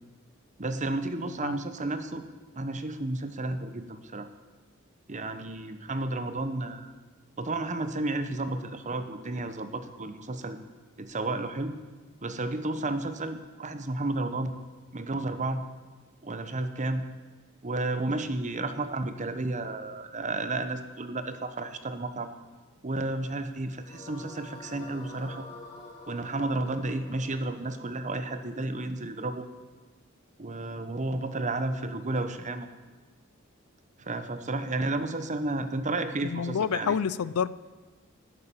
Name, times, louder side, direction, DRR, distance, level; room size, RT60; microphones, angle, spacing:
voice 1, 0.6-2.2 2.6-4.3 5.1-6.9 7.4-10.6 11.0-11.7 12.2-14.5 14.9-15.6 16.2-17.0 17.6-22.3 22.8-25.5 26.1-29.5 30.4-32.7 34.0-37.0, right 2 dB, 35° right, 10 dB, 1.0 m, -32 dB
sound 1, 23.8-29.0, left 2 dB, 30° left, 4.0 m, -48 dB
voice 2, 36.2-37.5, left 7 dB, 85° left, 18 dB, 0.4 m, -28 dB
11.5 x 9.6 x 8.7 m, 1.3 s
head